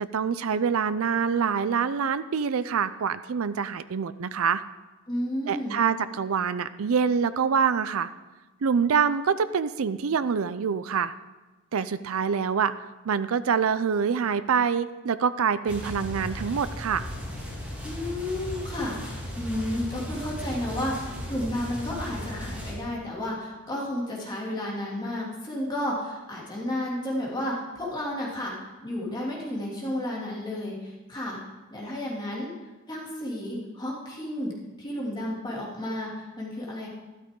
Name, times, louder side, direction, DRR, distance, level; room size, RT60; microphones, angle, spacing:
voice 1, 0.0-4.6 5.5-8.1 8.6-11.1 11.7-12.7 13.1-17.0, right 6 dB, 75° right, 14 dB, 0.5 m, -25 dB
voice 2, 5.1-5.8 17.8-31.4 31.7-32.5 32.9-34.5 34.8-36.9, left 1 dB, 20° left, -4 dB, 2.6 m, -32 dB
sound 1, 15.7-22.7, equal, 5° right, 3.1 m, -36 dB
12.5 x 12.5 x 3.7 m, 1.1 s
head